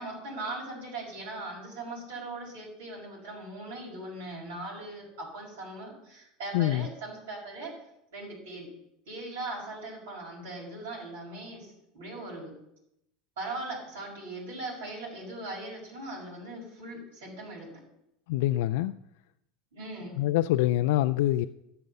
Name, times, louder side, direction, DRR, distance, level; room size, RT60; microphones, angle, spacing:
voice 1, 0.0-7.7 8.1-8.7 9.1-12.5 13.4-17.7 19.7-20.2, right 2 dB, 75° right, -4 dB, 6.0 m, -39 dB
voice 2, 6.5-6.9 18.3-18.9 20.2-21.5, left 14 dB, 65° left, 10 dB, 0.4 m, -25 dB
12.5 x 7.9 x 6.8 m, 0.81 s
hypercardioid pair, 80°, 0 cm